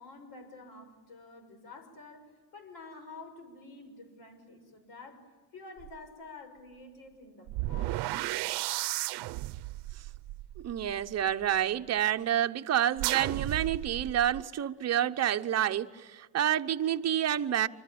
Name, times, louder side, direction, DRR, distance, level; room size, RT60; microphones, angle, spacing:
voice 1, 0.0-5.2 5.5-8.5, left 3 dB, 65° left, 6.3 m, -49 dB
sound 1, 5.8-6.0 7.5-11.6 13.0-14.4, right 17 dB, 80° right, 0.7 m, -34 dB
voice 2, 10.6-17.7, right 10 dB, 40° right, 0.9 m, -28 dB
26.5 x 25.0 x 8.7 m
cardioid pair, 140°, 39 cm